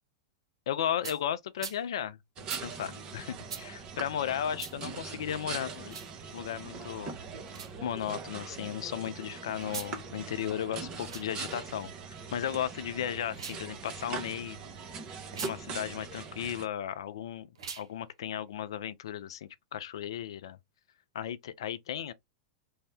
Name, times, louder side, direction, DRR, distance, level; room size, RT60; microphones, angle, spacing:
voice 1, 0.7-6.0 6.3-7.2 7.8-11.9 12.3-14.6 15.4-17.5 17.8-20.6 21.1-22.1, left 10 dB, 70° left, 0.4 m, -35 dB
sound 1, 1.0-1.2 1.6-1.8 2.5-2.6 3.5-3.6 4.6-4.7 5.8-6.1 7.5-7.7 9.6-9.9 11.0-11.3 13.3-13.6 15.3-15.5 17.5-17.9, right 6 dB, 75° right, 0.6 m, -41 dB
sound 2, 2.4-16.7, right 5 dB, 35° right, 0.8 m, -42 dB
2.7 x 2.1 x 3.3 m
hypercardioid pair, 100°, 3 cm